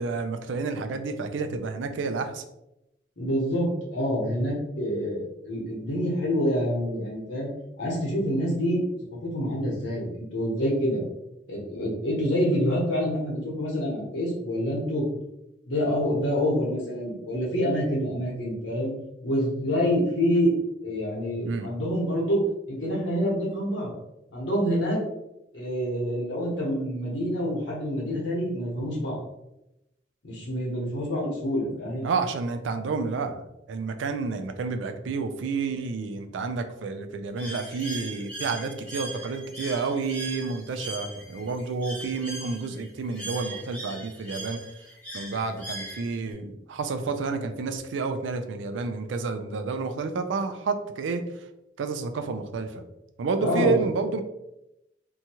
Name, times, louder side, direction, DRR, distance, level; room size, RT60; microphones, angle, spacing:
voice 1, 0.0-2.4 21.4-21.7 32.0-33.4 33.7-44.6 45.1-51.2 51.8-52.9 53.2-54.2, right 4 dB, 85° right, 8 dB, 0.4 m, -30 dB
voice 2, 3.2-7.5 7.8-8.8 9.2-11.0 11.5-15.0 15.7-18.9 19.2-20.5 20.8-22.4 22.7-23.9 24.3-25.0 25.5-29.2 30.2-32.1 53.4-53.8, equal, 80° left, -3 dB, 1.1 m, -27 dB
Bird, 37.4-46.3, right 1 dB, 10° left, 0.8 m, -39 dB
2.8 x 2.3 x 2.8 m, 0.87 s
head